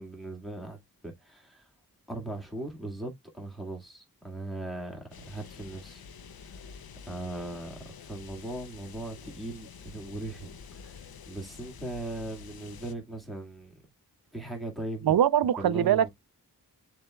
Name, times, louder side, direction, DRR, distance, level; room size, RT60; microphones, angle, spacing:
voice 1, 0.0-1.7 2.1-6.0 7.1-13.7 14.3-15.2 15.6-16.1, right 2 dB, ahead, 1.9 m, -39 dB
sound 1, 5.1-12.9, left 6 dB, 70° left, 0.6 m, -48 dB
voice 2, 15.0-16.1, right 10 dB, 70° right, 0.5 m, -22 dB
6.7 x 3.2 x 2.3 m
wide cardioid pair, 75°, 38 cm